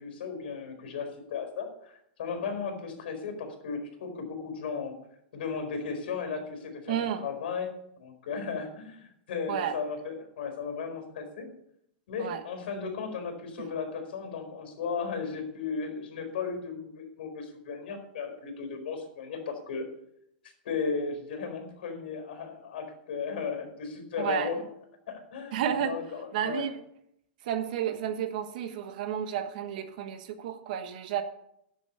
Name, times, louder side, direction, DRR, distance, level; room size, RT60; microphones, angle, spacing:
voice 1, 0.0-5.0 5.3-7.7 8.0-11.5 12.1-19.9 20.6-24.6 25.1-26.7, left 5 dB, 60° left, 5 dB, 4.6 m, -35 dB
voice 2, 6.9-7.2 9.5-9.7 12.2-12.4 24.2-24.5 25.5-25.9 26.3-26.8 27.4-31.2, right 9 dB, 45° right, 9 dB, 1.3 m, -31 dB
11.5 x 7.2 x 8.3 m, 0.77 s
supercardioid pair, 170°, 6 cm